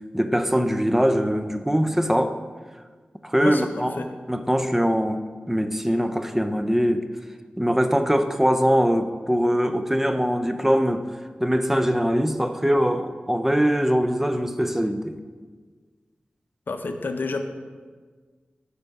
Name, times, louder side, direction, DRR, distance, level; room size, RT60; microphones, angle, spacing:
voice 1, 0.1-2.4 3.2-4.0 4.3-5.2 5.5-7.1 7.6-11.1 11.4-15.2, equal, 10° right, 8 dB, 0.4 m, -22 dB
voice 2, 3.4-4.1 16.7-17.5, left 3 dB, 65° left, 7 dB, 0.5 m, -29 dB
5.6 x 4.1 x 5.3 m, 1.5 s
wide cardioid pair, 55°, 3 cm